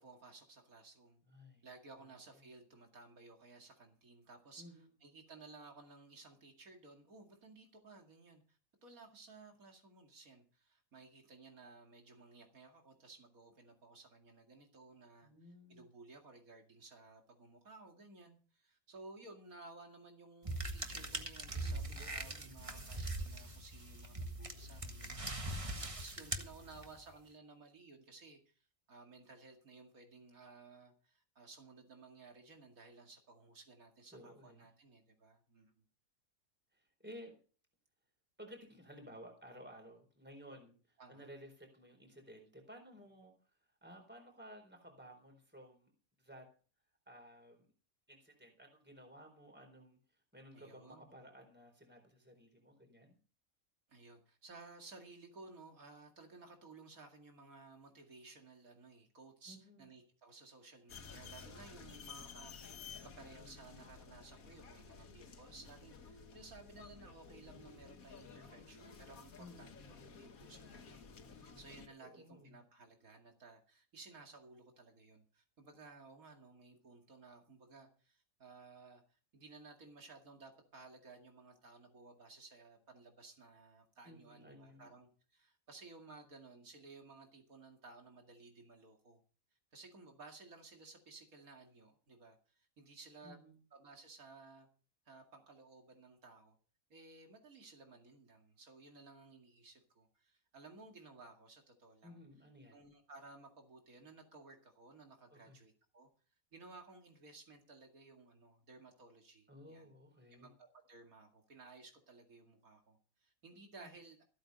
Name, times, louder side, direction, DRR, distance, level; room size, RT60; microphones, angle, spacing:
voice 1, 0.0-1.2 1.6-35.8 41.0-41.3 50.5-51.1 53.9-89.2 89.7-93.4 93.7-94.7 95.1-96.6 96.9-102.2 102.7-106.1 106.5-109.9 110.3-114.2, right 3 dB, 85° right, 3 dB, 2.7 m, -57 dB
voice 2, 1.3-1.7 4.6-4.8 15.2-15.9 21.6-22.5 25.5-25.8 34.1-34.7 36.7-37.3 38.4-43.3 43.8-45.9 46.2-46.5 47.1-47.7 48.1-50.0 50.3-53.2 59.5-59.9 69.4-69.8 72.0-72.5 84.0-84.9 93.2-93.6 102.0-102.8 105.3-105.6 109.5-110.5 113.8-114.0, equal, 5° right, 3 dB, 4.2 m, -56 dB
sound 1, 20.5-27.1, right 2 dB, 25° right, 1.5 m, -42 dB
sound 2, 60.9-71.9, left 5 dB, 90° left, 1.8 m, -54 dB
15.5 x 8.9 x 5.4 m, 0.39 s
omnidirectional pair, 1.4 m